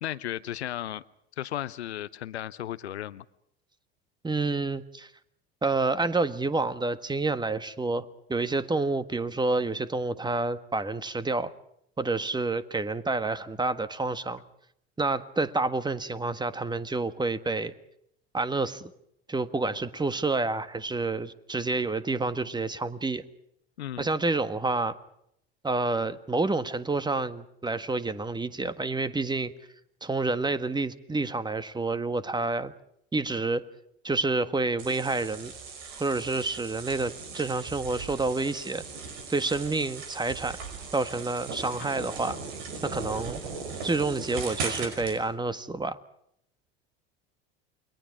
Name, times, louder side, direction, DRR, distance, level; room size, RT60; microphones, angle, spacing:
voice 1, 0.0-1.0 1.4-3.2 23.8-24.1, left 12 dB, 90° left, 16 dB, 0.7 m, -35 dB
voice 2, 4.2-5.1 5.6-11.5 12.0-14.4 15.0-17.7 18.3-18.9 19.3-23.2 24.0-25.0 25.6-29.5 30.0-32.7 33.1-33.6 34.0-35.5 35.9-38.8 39.3-40.6 40.9-42.4 42.8-43.4 43.8-46.0, right 3 dB, 15° right, 12 dB, 1.6 m, -28 dB
sound 1, 34.8-45.2, right 4 dB, 75° right, 5.6 m, -38 dB
29.5 x 22.5 x 4.8 m, 0.74 s
hypercardioid pair, 80°, 32 cm